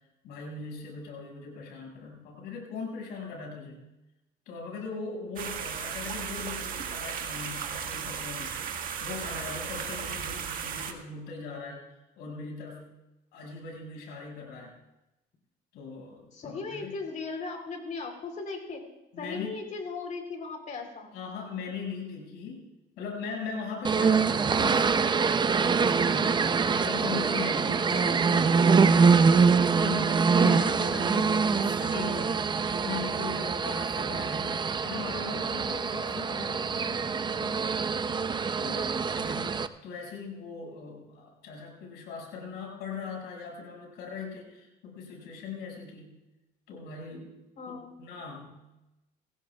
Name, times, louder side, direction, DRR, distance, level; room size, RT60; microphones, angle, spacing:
voice 1, 0.2-3.8 4.5-8.5 9.0-12.9 13.3-14.8 15.7-16.9 19.1-19.6 21.1-22.6 23.0-37.5 39.1-46.1 46.7-47.3 47.7-48.6, left 5 dB, 85° left, 0 dB, 6.5 m, -40 dB
sound 1, 5.4-10.9, right 7 dB, 55° right, 1.8 m, -35 dB
voice 2, 16.3-18.8 19.2-21.1 38.6-39.0 47.6-48.0, left 4 dB, 50° left, 4 dB, 3.8 m, -37 dB
sound 2, 23.8-39.7, right 5 dB, 25° right, 0.6 m, -25 dB
26.0 x 16.5 x 2.4 m, 0.98 s
cardioid pair, 110°, 17 cm